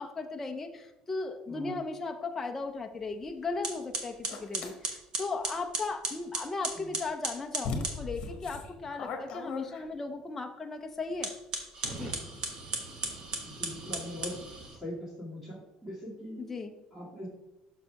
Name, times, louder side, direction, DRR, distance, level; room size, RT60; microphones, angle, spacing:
voice 1, 0.0-11.3 11.9-12.1 16.4-16.7, left 3 dB, 15° left, 4 dB, 0.4 m, -37 dB
voice 2, 1.5-1.8 6.7-7.0 13.4-14.3 14.7-16.6 16.9-17.3, left 1 dB, 10° right, -9 dB, 2.0 m, -41 dB
sound 1, 3.1-3.2 3.6-8.0 11.1-14.8, right 3 dB, 35° right, 1.1 m, -36 dB
sound 2, 4.3-4.7 7.0-7.1 7.6-10.2, left 4 dB, 45° left, 1.2 m, -38 dB
6.2 x 4.8 x 5.6 m, 0.97 s
cardioid pair, 175°, 2 cm